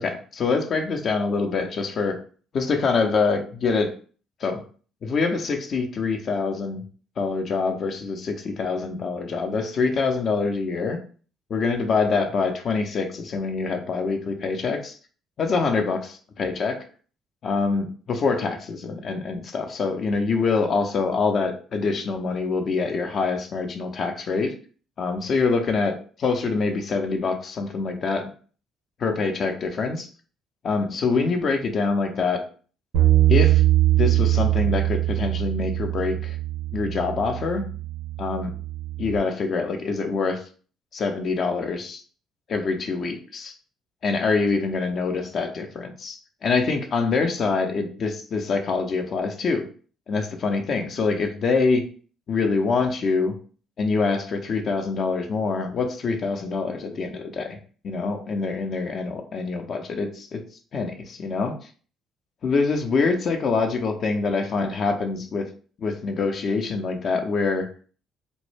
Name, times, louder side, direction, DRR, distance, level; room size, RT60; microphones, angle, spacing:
voice 1, 0.0-2.2 2.5-3.9 4.4-4.6 5.0-6.8 7.2-11.0 11.5-15.0 15.4-16.8 17.4-24.5 25.0-28.3 29.0-30.1 30.6-32.4 33.3-33.6 33.9-36.4 36.7-37.6 38.2-38.5 39.0-40.4 40.9-42.0 42.5-43.5 44.0-49.7 50.1-51.8 52.3-53.3 53.8-57.6 57.8-60.4 60.7-61.6 62.4-65.5 65.8-67.7, left 4 dB, 55° left, 5 dB, 0.5 m, -25 dB
Bass guitar, 32.9-39.2, right 15 dB, 80° right, 0.6 m, -22 dB
2.1 x 2.0 x 3.2 m, 0.41 s
hypercardioid pair, 55°, 0 cm